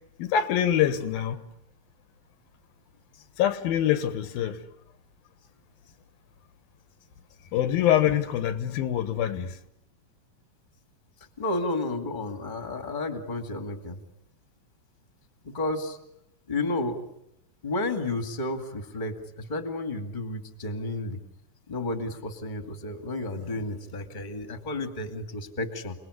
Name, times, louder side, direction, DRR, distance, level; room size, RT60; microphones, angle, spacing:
voice 1, 0.2-1.4 3.4-4.6 7.5-9.5, left 10 dB, 85° left, 3.2 m, -24 dB
voice 2, 11.4-14.0 15.4-16.0 16.5-17.1 17.6-21.2 21.7-26.0, left 2 dB, 15° left, 1.9 m, -32 dB
29.0 x 20.0 x 9.9 m
omnidirectional pair, 4.1 m